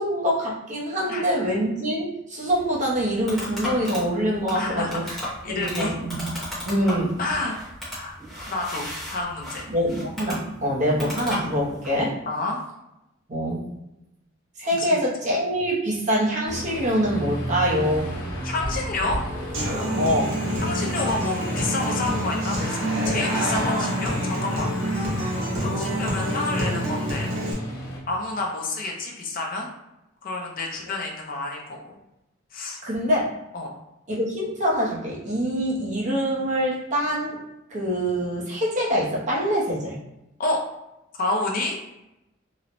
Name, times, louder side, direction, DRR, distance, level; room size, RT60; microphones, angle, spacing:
voice 1, 0.0-5.2 5.5-6.3 6.6-7.2 9.7-12.2 13.3-13.7 14.6-18.1 20.0-20.4 25.6-25.7 32.8-33.3 34.1-37.4 37.7-40.0, equal, 40° right, -4 dB, 0.6 m, -25 dB
Mouse clicks and scroll wheel use, 2.5-12.0, equal, ahead, 0.9 m, -35 dB
voice 2, 4.5-5.1 5.4-5.9 7.2-7.6 7.9-8.1 8.5-9.7 12.3-12.6 14.7-15.0 18.4-19.2 20.6-22.8 23.0-25.1 25.6-27.3 28.1-29.7 30.2-31.8 32.5-32.8 33.5-33.7 40.4-40.6 41.2-41.8, left 2 dB, 45° left, 0 dB, 0.5 m, -29 dB
Aircraft, 16.5-28.0, equal, 80° left, 1.0 m, -33 dB
Human voice / Acoustic guitar, 19.5-27.5, equal, 85° right, 0.8 m, -27 dB
3.0 x 2.0 x 2.5 m, 0.90 s
head